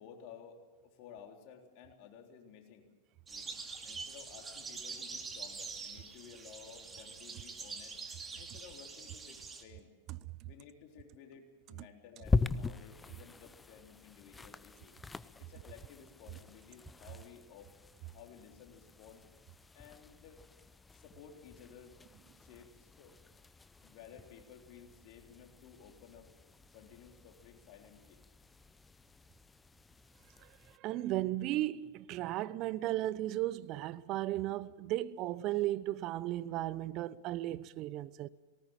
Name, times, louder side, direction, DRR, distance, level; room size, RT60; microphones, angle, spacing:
voice 1, 0.0-2.9 3.3-3.6 3.8-8.0 8.4-9.9 10.4-14.9 15.4-17.7 18.1-19.2 19.7-20.4 20.9-22.0 22.4-23.2 23.8-26.3 26.7-28.2, left 7 dB, 50° left, 3.6 m, -55 dB
sound 1, 3.3-9.6, right 4 dB, 20° right, 2.5 m, -45 dB
sound 2, 12.2-30.8, left 3 dB, 15° left, 0.7 m, -42 dB
voice 2, 30.4-38.3, right 15 dB, 45° right, 0.7 m, -35 dB
18.5 x 18.5 x 8.9 m
hypercardioid pair, 100°, 0 cm